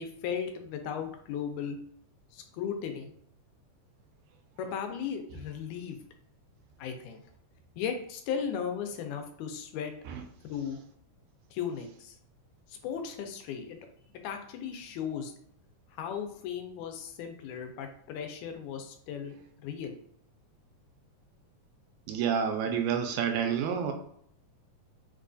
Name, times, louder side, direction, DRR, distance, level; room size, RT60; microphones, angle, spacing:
voice 1, 0.0-1.8 2.3-3.1 4.6-6.0 6.8-7.2 7.8-9.9 10.4-10.8 11.5-12.2 12.7-13.8 14.2-15.3 15.9-19.9, left 7 dB, 85° left, 5 dB, 1.9 m, -36 dB
voice 2, 22.1-23.9, right 7 dB, 85° right, 5 dB, 1.9 m, -29 dB
4.7 x 2.3 x 2.5 m, 0.67 s
omnidirectional pair, 3.4 m